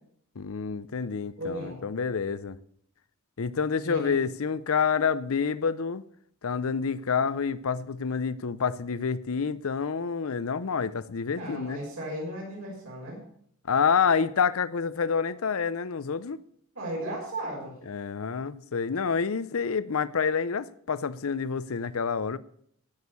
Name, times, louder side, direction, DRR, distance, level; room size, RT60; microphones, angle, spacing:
voice 1, 0.4-2.6 3.4-6.0 6.4-11.8 13.7-16.4 17.9-22.4, left 6 dB, 75° left, 0.6 m, -28 dB
voice 2, 1.4-1.8 3.8-4.1 11.3-13.2 16.7-17.7, right 1 dB, 75° right, 6.4 m, -35 dB
16.5 x 6.5 x 6.9 m
head